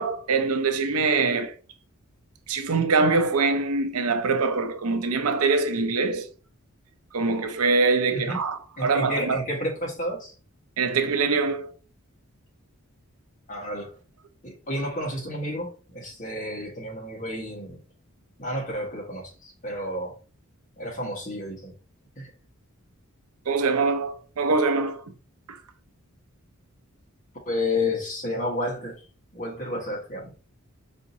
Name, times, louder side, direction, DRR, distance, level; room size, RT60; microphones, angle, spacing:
voice 1, 0.0-1.5 2.5-6.3 7.1-9.4 10.8-11.7 23.5-25.0 25.5-25.6, right 4 dB, 80° right, 0.6 m, -23 dB
voice 2, 8.8-10.3 13.5-13.9 14.4-17.8 18.4-20.1 20.8-21.7 22.1-22.3 27.5-29.0 29.3-30.3, left 1 dB, 35° left, 1.4 m, -31 dB
4.9 x 2.7 x 2.7 m
head